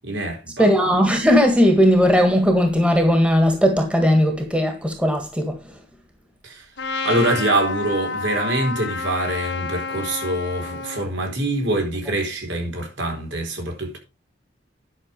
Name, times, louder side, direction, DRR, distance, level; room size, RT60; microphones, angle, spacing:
voice 1, 0.0-0.7 6.4-6.6 7.0-14.0, right 1 dB, 70° right, 4.4 m, -24 dB
voice 2, 0.6-5.5, equal, 5° right, 1.7 m, -17 dB
Trumpet, 6.8-11.1, left 4 dB, 70° left, 1.5 m, -29 dB
11.0 x 6.1 x 5.3 m
head